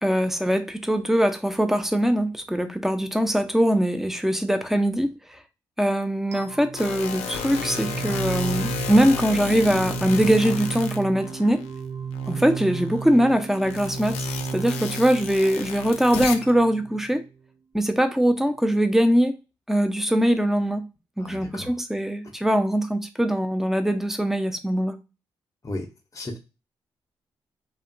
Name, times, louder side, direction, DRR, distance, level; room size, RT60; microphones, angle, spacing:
voice 1, 0.0-5.4 5.8-11.6 12.3-14.2 14.5-17.2 17.7-19.3 19.7-20.8 21.2-25.0, equal, 5° right, 0.6 m, -22 dB
sound 1, 6.3-17.2, right 7 dB, 80° right, 0.5 m, -34 dB
sound 2, 6.8-11.7 12.1-16.6, left 6 dB, 80° left, 0.4 m, -33 dB
voice 2, 21.2-21.7 25.6-26.4, left 1 dB, 30° left, 0.7 m, -35 dB
2.7 x 2.2 x 2.6 m
hypercardioid pair, 45°, 11 cm